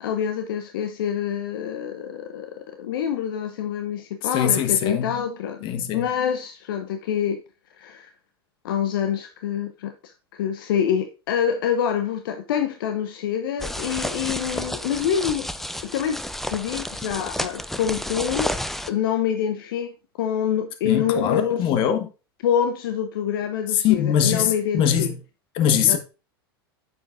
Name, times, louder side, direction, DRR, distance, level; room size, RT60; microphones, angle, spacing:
voice 1, 0.0-5.6 5.9-7.4 7.8-8.1 8.6-15.5 15.8-18.5 18.9-19.9 20.2-21.7 22.4-25.1 25.9-26.0, left 8 dB, 65° left, 0.8 m, -26 dB
voice 2, 4.3-5.1 5.6-6.0 20.8-22.1 23.8-25.1 25.5-26.0, left 9 dB, 45° left, 1.3 m, -21 dB
sound 1, 13.6-18.9, left 1 dB, ahead, 0.5 m, -31 dB
9.3 x 7.0 x 2.6 m
hypercardioid pair, 95°, 13 cm